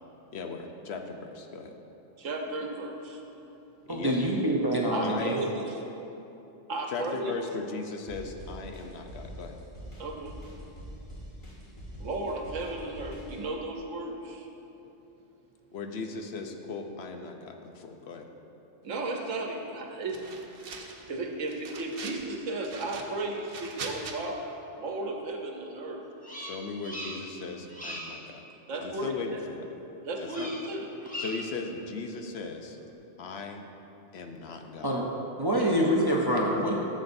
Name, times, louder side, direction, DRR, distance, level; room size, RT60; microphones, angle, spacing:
voice 1, 0.3-1.7 3.9-4.1 5.0-5.3 6.9-9.6 15.7-18.3 26.3-28.4 28.8-29.7 30.2-30.5 31.2-32.8 33.2-33.6 34.1-35.0, left 4 dB, 65° left, 4 dB, 0.9 m, -38 dB
voice 2, 2.2-3.2 4.9-5.7 6.7-7.4 10.0-10.4 12.0-14.5 18.8-20.5 21.1-26.0 28.7-29.4 30.0-30.9 35.5-35.8, right 2 dB, 80° right, 2 dB, 1.3 m, -34 dB
voice 3, 3.9-5.4 34.8-35.1 35.4-36.8, equal, 25° right, -2 dB, 0.5 m, -26 dB
sound 1, 8.1-13.4, equal, 25° left, 1.9 m, -44 dB
sound 2, 20.1-21.1 21.5-22.2 22.6-24.2, right 4 dB, 55° right, 0.9 m, -42 dB
Bird vocalization bird call bird song, 26.2-27.4 27.7-28.2 30.3-30.7 31.0-31.6, equal, 5° left, 1.0 m, -39 dB
13.0 x 7.4 x 2.6 m, 3.0 s
omnidirectional pair, 1.3 m